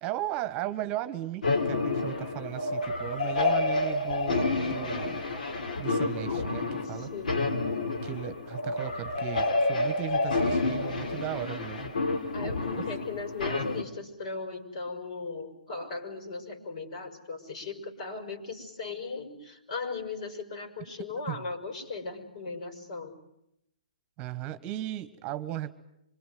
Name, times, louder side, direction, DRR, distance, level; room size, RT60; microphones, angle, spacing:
voice 1, 0.0-5.2 5.8-7.1 8.0-11.9 21.3-21.4 24.2-25.7, right 12 dB, 25° right, 13 dB, 1.4 m, -36 dB
sound 1, 1.4-13.8, left 3 dB, 75° left, 3.1 m, -29 dB
voice 2, 6.8-7.6 12.3-23.2, left 4 dB, 55° left, 6 dB, 5.9 m, -38 dB
25.5 x 23.0 x 9.4 m, 0.81 s
hypercardioid pair, 135°, 5 cm